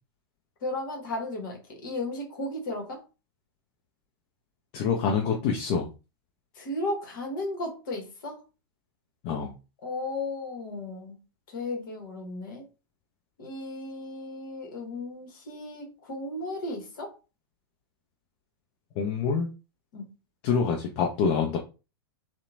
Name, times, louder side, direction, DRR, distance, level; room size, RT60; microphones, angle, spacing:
voice 1, 0.6-3.0 6.6-8.4 9.8-11.2 11.5-12.6 13.4-17.1 19.9-20.1, left 2 dB, 55° left, 2 dB, 1.0 m, -35 dB
voice 2, 4.7-5.9 9.2-9.5 19.0-19.5 20.4-21.6, left 6 dB, 35° left, 0 dB, 0.5 m, -26 dB
2.8 x 2.1 x 2.6 m, 0.30 s
figure-of-eight pair, 100°, 13 cm